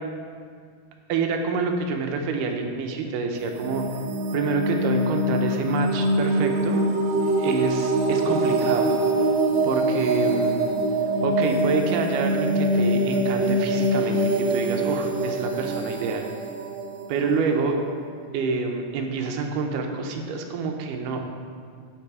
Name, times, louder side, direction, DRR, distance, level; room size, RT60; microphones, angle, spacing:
voice 1, 1.1-3.8 4.3-6.8 7.2-8.9 9.6-10.8 11.2-14.2 14.5-16.2 17.1-17.8 18.3-21.2, right 4 dB, 90° right, 3 dB, 2.4 m, -27 dB
sound 1, 3.4-18.1, right 1 dB, 75° right, 1.7 m, -24 dB
11.5 x 4.0 x 4.8 m, 2.1 s
omnidirectional pair, 3.6 m